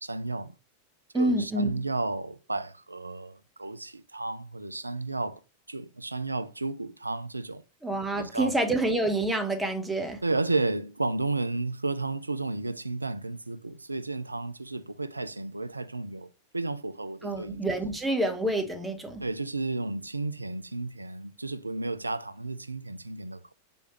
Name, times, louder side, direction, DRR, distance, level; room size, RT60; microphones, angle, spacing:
voice 1, 0.0-0.5 1.1-5.4 5.7-7.6 8.2-8.8 10.2-17.6 19.2-23.5, right 2 dB, 80° right, 0.3 m, -32 dB
voice 2, 1.1-1.7 7.8-10.2 17.2-19.2, right 1 dB, 10° right, 0.9 m, -27 dB
4.6 x 3.5 x 2.8 m
figure-of-eight pair, 90°, 0 cm